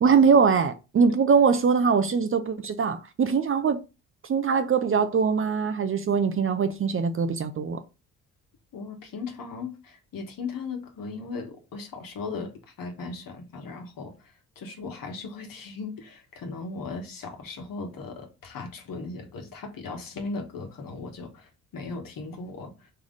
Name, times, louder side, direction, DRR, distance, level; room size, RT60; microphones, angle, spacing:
voice 1, 0.0-3.8 4.3-7.8, right 5 dB, 30° right, 0.6 m, -22 dB
voice 2, 8.7-22.9, left 4 dB, 55° left, 1.4 m, -37 dB
3.5 x 3.3 x 3.9 m
hypercardioid pair, 50°, 40 cm